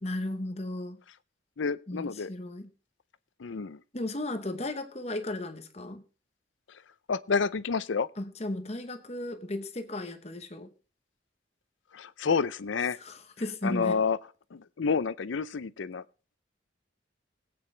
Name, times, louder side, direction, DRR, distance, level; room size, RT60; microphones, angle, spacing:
voice 1, 0.0-1.0 1.9-2.7 3.9-6.0 8.2-10.7 13.0-14.0, left 1 dB, 35° left, 1.0 m, -35 dB
voice 2, 1.6-2.3 3.4-3.8 7.1-8.1 11.9-13.0 13.6-14.2 14.5-16.0, left 5 dB, 85° left, 0.5 m, -29 dB
20.5 x 8.5 x 3.3 m
head